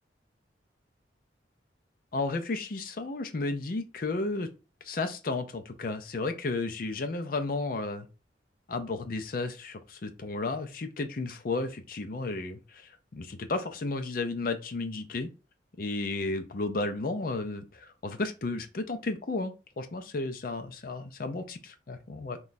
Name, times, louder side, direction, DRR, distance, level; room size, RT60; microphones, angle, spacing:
voice 1, 2.1-4.5 4.8-8.1 8.7-15.3 15.8-22.4, left 3 dB, 50° left, 7 dB, 0.5 m, -33 dB
3.1 x 2.3 x 4.0 m, 0.32 s
head